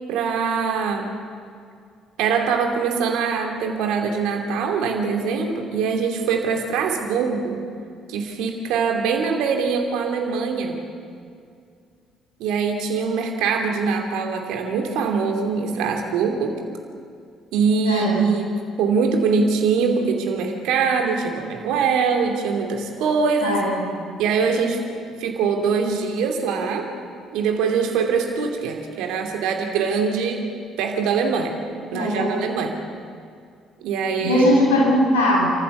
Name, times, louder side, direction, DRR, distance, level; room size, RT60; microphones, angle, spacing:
voice 1, 0.1-1.1 2.2-7.6 8.1-10.8 12.4-16.6 17.5-18.5 18.8-23.6 24.2-24.8 25.2-26.9 27.3-30.5 30.8-31.6 31.9-32.8 33.8-34.5, right 5 dB, 65° right, 3 dB, 2.8 m, -23 dB
voice 2, 17.8-18.2 23.4-23.7 31.9-32.4 34.2-35.5, left 1 dB, 80° left, -3 dB, 7.0 m, -19 dB
29.5 x 14.5 x 7.1 m, 2.2 s
hypercardioid pair, 50°, 0 cm